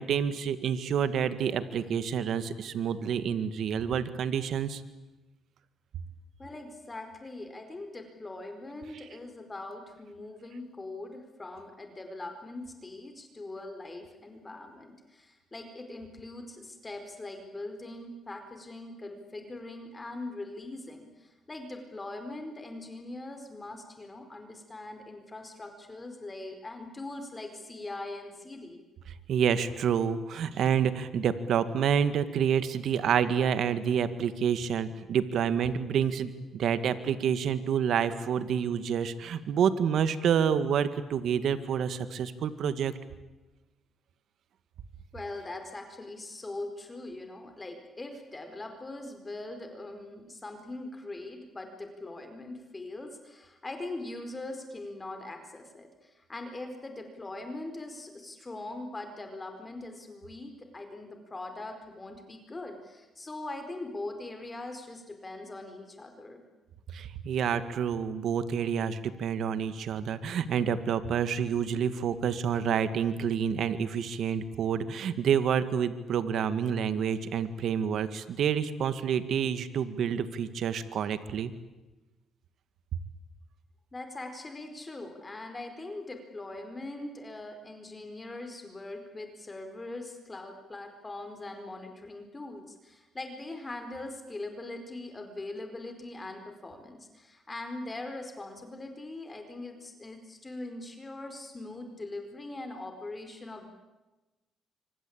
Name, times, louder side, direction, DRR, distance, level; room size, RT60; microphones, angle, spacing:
voice 1, 0.0-4.8 29.3-42.9 66.9-81.5, right 8 dB, 70° right, 12 dB, 1.9 m, -28 dB
voice 2, 6.4-28.8 45.1-66.4 83.9-103.7, left 2 dB, 20° left, 6 dB, 4.6 m, -41 dB
26.0 x 25.0 x 8.8 m, 1.1 s
cardioid pair, 90°, 0 cm